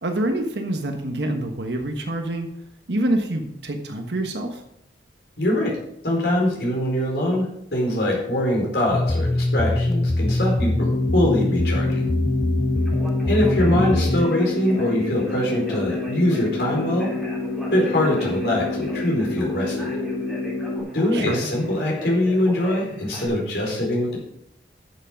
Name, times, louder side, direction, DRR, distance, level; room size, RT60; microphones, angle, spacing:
voice 1, 0.0-2.5 2.9-4.6 13.6-13.9 21.1-21.5, right 1 dB, 75° right, 4 dB, 1.3 m, -26 dB
voice 2, 5.4-5.8 6.0-12.1 13.2-17.1 17.7-19.9 20.9-24.2, left 1 dB, 70° left, -2 dB, 4.4 m, -23 dB
sound 1, 8.9-14.3, left 1 dB, 20° left, 0.3 m, -22 dB
sound 2, 10.8-20.8, left 2 dB, 50° left, 1.9 m, -29 dB
Conversation, 12.8-23.3, left 1 dB, 5° right, 3.6 m, -37 dB
11.0 x 7.2 x 5.2 m, 0.77 s
head